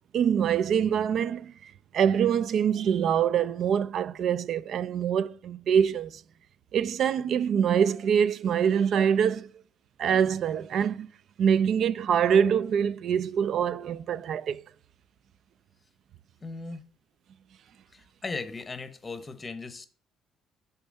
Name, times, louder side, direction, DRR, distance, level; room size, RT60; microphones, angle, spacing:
voice 1, 0.1-6.2 6.7-9.5 10.0-11.1 11.4-14.6, right 8 dB, 60° right, 0.3 m, -25 dB
voice 2, 16.4-16.8 17.9-19.9, left 3 dB, 25° left, 0.8 m, -37 dB
6.9 x 4.5 x 5.2 m
cardioid pair, 105°, 0 cm